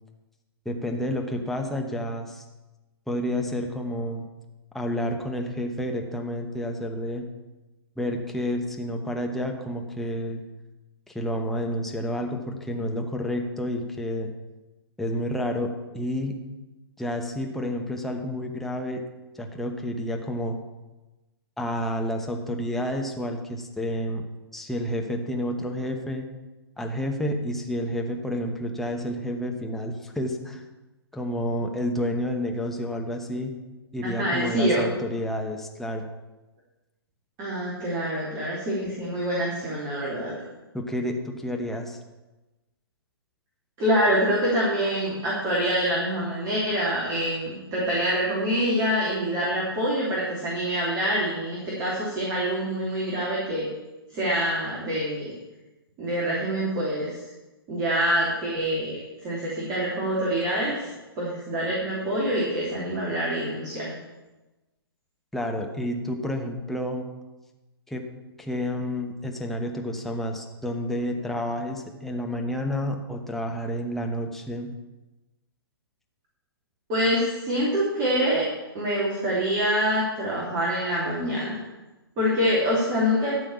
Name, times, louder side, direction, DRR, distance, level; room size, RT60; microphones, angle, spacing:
voice 1, 0.6-2.4 3.1-4.2 4.7-7.3 8.0-10.4 11.1-14.3 15.0-16.4 17.0-19.0 19.3-20.6 21.6-24.2 24.5-26.3 26.8-30.6 31.1-33.5 33.9-36.1 40.7-42.0 65.3-67.1 67.9-68.1 68.4-74.7, left 1 dB, ahead, 1 dB, 1.0 m, -30 dB
voice 2, 34.0-34.8 37.4-40.3 43.8-53.7 54.1-55.3 56.0-57.2 57.7-58.9 59.2-60.9 61.2-63.9 76.9-78.4 78.7-81.6 82.2-83.3, equal, 25° right, -6 dB, 3.1 m, -25 dB
13.5 x 5.6 x 7.1 m, 1.1 s
figure-of-eight pair, 125°, 13 cm